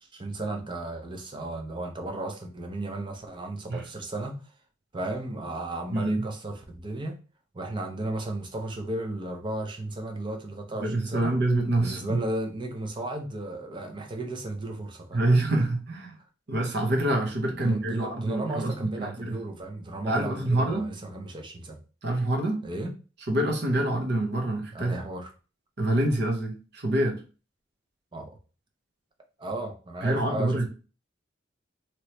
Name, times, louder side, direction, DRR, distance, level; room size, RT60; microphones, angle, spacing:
voice 1, 0.0-4.4 4.9-7.2 7.5-11.4 11.8-15.3 17.5-21.8 22.6-23.0 24.7-25.3 28.1-28.4 29.4-30.7, right 2 dB, 25° right, 4 dB, 0.5 m, -34 dB
voice 2, 5.9-6.2 10.8-12.2 15.1-16.2 16.5-19.3 20.1-20.9 22.0-22.6 23.3-24.9 25.8-27.2 30.0-30.7, right 1 dB, 55° right, 2 dB, 0.8 m, -26 dB
2.9 x 2.9 x 3.1 m, 0.35 s
head